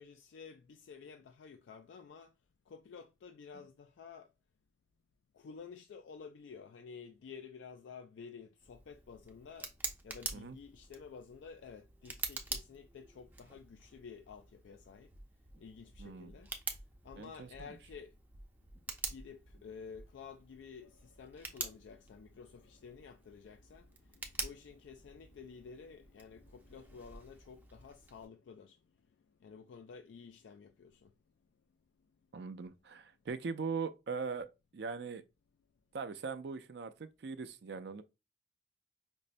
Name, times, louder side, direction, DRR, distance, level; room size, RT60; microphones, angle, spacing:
voice 1, 0.0-2.3 2.7-4.3 5.3-9.7 10.0-15.1 15.6-16.5 17.0-18.2 18.9-28.8 29.4-31.1, left 6 dB, 90° left, 0.3 m, -52 dB
Tick, 8.6-28.3, right 3 dB, 10° right, 0.5 m, -47 dB
sound 1, 15.1-15.6 15.9-16.4 16.7-17.2 17.5-18.0 18.3-18.8 19.1-19.6 19.9-20.0, equal, 45° right, 0.9 m, -54 dB
voice 2, 16.0-16.3 17.2-17.8 32.3-34.5 34.7-35.2 35.9-38.0, right 5 dB, 65° right, 0.4 m, -40 dB
5.2 x 2.0 x 2.5 m
head